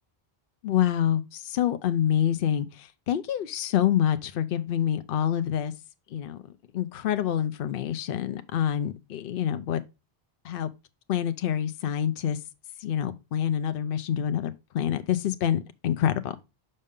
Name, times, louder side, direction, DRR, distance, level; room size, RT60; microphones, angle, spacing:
voice 1, 0.6-5.7 6.1-6.4 6.7-9.8 10.4-10.7 11.1-12.4 12.8-16.4, left 10 dB, 65° left, 0.7 m, -27 dB
6.5 x 5.4 x 3.5 m
omnidirectional pair, 1.0 m